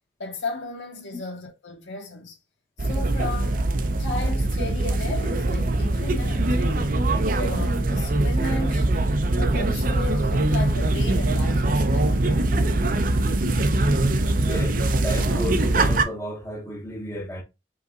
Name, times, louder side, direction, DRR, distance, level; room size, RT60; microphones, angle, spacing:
voice 1, 0.2-2.4 2.8-3.7 4.0-7.0 7.3-8.9 9.3-12.5, left 2 dB, 90° left, 1.8 m, -34 dB
sound 1, 2.8-16.0, right 2 dB, 45° right, 0.6 m, -22 dB
voice 2, 14.3-14.8 15.0-17.4, left 1 dB, 15° left, 0.9 m, -33 dB
5.4 x 3.5 x 2.4 m
head